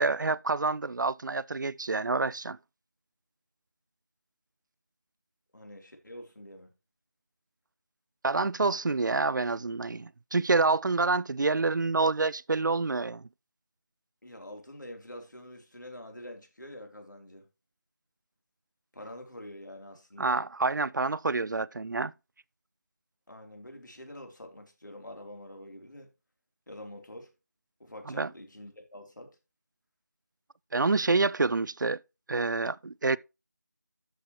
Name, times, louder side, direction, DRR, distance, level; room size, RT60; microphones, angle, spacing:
voice 1, 0.0-2.6 8.2-13.3 20.2-22.1 28.1-28.3 30.7-32.0 32.3-33.2, right 3 dB, 85° right, 0.4 m, -27 dB
voice 2, 5.5-6.7 14.2-17.5 18.9-20.4 23.3-26.1 26.7-27.3 27.8-29.3, left 1 dB, 80° left, 3.2 m, -46 dB
13.0 x 6.1 x 3.0 m
figure-of-eight pair, 170°, 10 cm